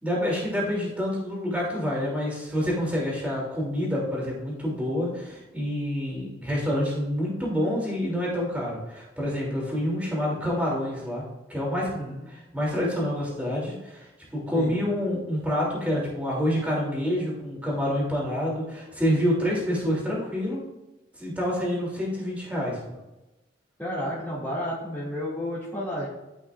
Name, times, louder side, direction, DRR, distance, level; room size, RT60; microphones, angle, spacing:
voice 1, 0.0-11.2 11.5-11.9 12.3-20.6 21.2-22.8, equal, 10° right, -5 dB, 2.6 m, -27 dB
voice 2, 11.9-12.3 14.5-14.8 23.8-26.1, equal, 10° left, -11 dB, 2.1 m, -31 dB
12.5 x 5.6 x 2.4 m, 1.0 s
head